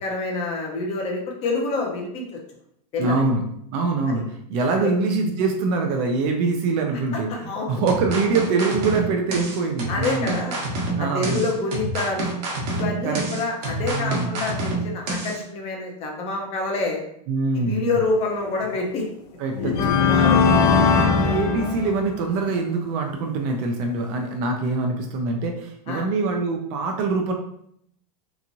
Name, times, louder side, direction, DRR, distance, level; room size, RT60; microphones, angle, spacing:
voice 1, 0.0-2.4 2.9-3.2 4.1-4.2 4.7-4.9 7.3-7.7 9.9-10.6 11.0-12.3 12.7-17.0 17.5-19.1 19.6-20.4 25.9-26.1, left 3 dB, 30° left, 1 dB, 0.6 m, -27 dB
voice 2, 3.0-3.4 3.7-10.3 11.0-11.4 13.0-13.2 13.8-14.3 17.3-17.9 19.4-20.1 20.5-27.3, right 3 dB, 40° right, 2 dB, 0.4 m, -24 dB
sound 1, 7.9-15.4, right 2 dB, 70° right, 1.0 m, -28 dB
sound 2, 18.6-18.8 19.5-22.3, left 5 dB, 75° left, 0.6 m, -19 dB
2.9 x 2.4 x 2.6 m, 0.70 s
supercardioid pair, 145°, 21 cm